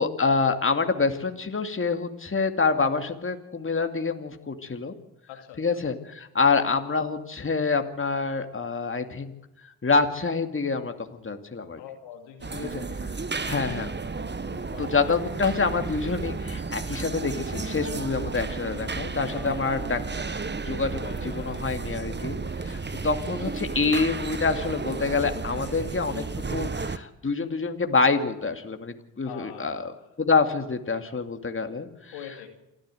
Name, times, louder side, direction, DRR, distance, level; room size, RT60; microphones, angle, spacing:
voice 1, 0.0-4.9 5.6-9.3 9.8-11.8 12.5-12.8 13.4-13.9 14.8-20.0 20.3-26.2 26.5-29.9 30.2-32.1, left 4 dB, 30° left, 6 dB, 2.5 m, -26 dB
voice 2, 5.3-5.7 11.8-12.7 13.5-13.7 14.5-15.2 19.3-20.1 20.8-21.5 23.2-23.5 25.5-25.8 29.2-29.9 32.1-32.5, left 9 dB, 80° left, 4 dB, 2.6 m, -44 dB
sound 1, 12.4-27.0, right 4 dB, 25° right, 1.4 m, -33 dB
28.0 x 11.5 x 7.9 m, 0.95 s
hypercardioid pair, 45°, 44 cm